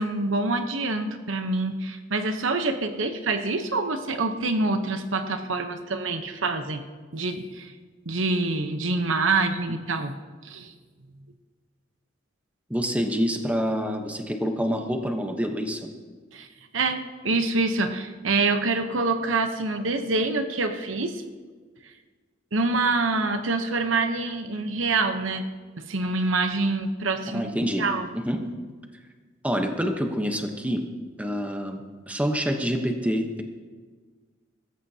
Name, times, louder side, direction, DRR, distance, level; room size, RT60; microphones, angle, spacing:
voice 1, 0.0-6.8 7.1-7.7 8.1-10.1 10.4-10.7 16.3-16.5 16.7-21.2 22.5-25.4 25.8-28.1, right 3 dB, 80° right, 7 dB, 1.0 m, -26 dB
voice 2, 12.7-15.9 27.3-27.8 28.2-28.4 29.4-30.9 31.2-33.4, equal, 5° right, 4 dB, 1.0 m, -27 dB
22.0 x 13.5 x 2.9 m, 1.5 s
head